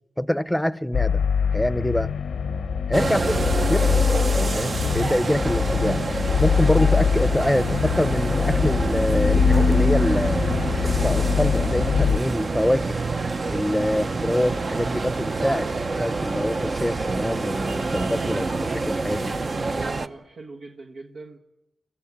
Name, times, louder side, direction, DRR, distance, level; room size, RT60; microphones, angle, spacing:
voice 1, 0.2-1.3 1.5-2.1 2.9-3.4 3.7-4.0 4.5-6.0 6.4-10.5 10.8-13.0 13.5-15.7 16.0-19.3, equal, 5° left, 0.7 m, -25 dB
sound 1, 0.9-12.2, left 7 dB, 85° left, 0.8 m, -23 dB
sound 2, 2.9-20.1, right 3 dB, 50° right, 0.8 m, -27 dB
sound 3, 12.5-19.8, right 1 dB, 20° right, 0.9 m, -41 dB
voice 2, 19.2-21.4, right 2 dB, 85° right, 1.5 m, -41 dB
24.0 x 15.0 x 8.7 m
cardioid pair, 75°, 0 cm